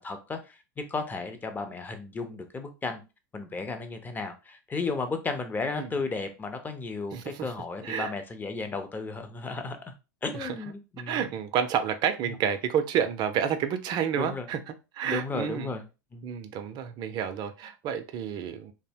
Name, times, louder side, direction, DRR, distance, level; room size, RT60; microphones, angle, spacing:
voice 1, 0.0-3.0 3.3-9.9 10.2-11.2 12.2-12.4 14.2-14.5 15.0-15.8 16.1-16.3, left 3 dB, 15° left, 0.6 m, -34 dB
voice 2, 5.7-6.0 7.1-7.5 7.8-8.1 10.4-10.6 11.1-14.6 14.9-15.7 16.2-18.7, right 8 dB, 45° right, 0.5 m, -29 dB
2.8 x 2.0 x 2.7 m
hypercardioid pair, 95°, 10 cm